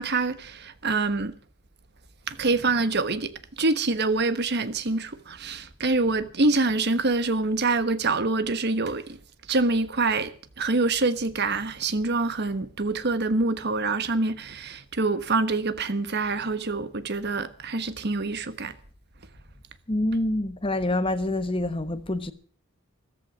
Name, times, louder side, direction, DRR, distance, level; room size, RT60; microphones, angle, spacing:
voice 1, 0.0-1.3 2.3-9.2 9.5-18.7, right 3 dB, 50° right, 1.3 m, -26 dB
voice 2, 19.9-22.3, left 1 dB, 25° left, 1.2 m, -26 dB
14.5 x 13.5 x 6.1 m
head